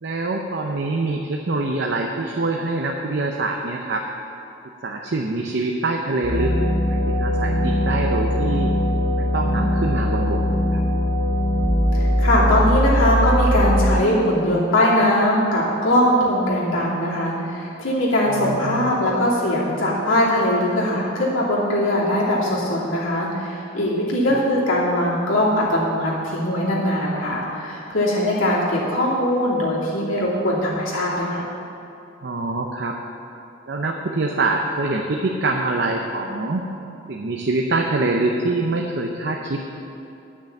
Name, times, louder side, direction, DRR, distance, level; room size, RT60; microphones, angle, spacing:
voice 1, 0.0-4.1 4.8-6.5 6.9-8.7 9.2-10.8 18.3-18.9 24.3-24.4 30.0-30.1 32.2-33.0 33.7-36.7 37.1-39.7, right 2 dB, 60° right, 2 dB, 0.6 m, -25 dB
sound 1, 6.2-14.0, left 1 dB, 75° right, 2.8 m, -20 dB
voice 2, 11.9-31.4, left 1 dB, 90° left, -6 dB, 2.7 m, -21 dB
10.0 x 6.2 x 7.1 m, 2.8 s
head